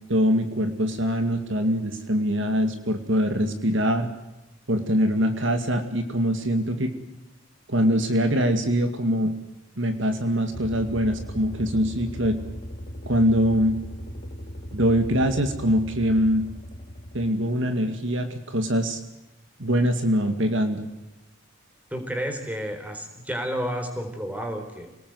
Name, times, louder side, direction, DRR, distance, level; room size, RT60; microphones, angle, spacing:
voice 1, 0.1-4.1 4.7-6.9 7.7-9.3 9.8-12.4 13.1-13.8 14.7-16.5 17.1-19.0 19.6-20.9, equal, 60° right, 7 dB, 2.2 m, -23 dB
sound 1, 10.5-17.3, equal, 30° left, 3.6 m, -38 dB
voice 2, 21.9-24.9, equal, 5° right, 5 dB, 4.1 m, -31 dB
28.0 x 19.0 x 8.0 m, 1.0 s
head